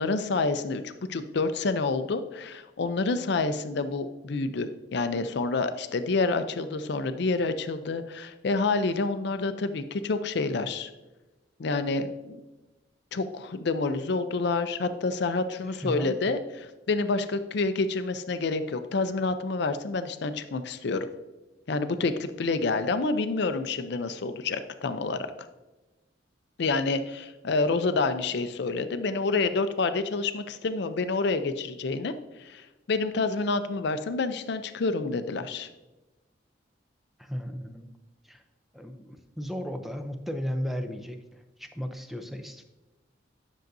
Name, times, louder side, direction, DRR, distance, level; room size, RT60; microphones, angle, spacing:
voice 1, 0.0-10.9 11.6-12.4 13.1-21.1 21.7-25.3 26.6-32.1 32.4-35.7, left 3 dB, 60° left, 10 dB, 0.5 m, -28 dB
voice 2, 15.8-16.2 37.2-37.9 38.2-38.4 38.7-42.6, equal, ahead, 6 dB, 0.5 m, -35 dB
10.5 x 6.4 x 2.6 m, 1.1 s
head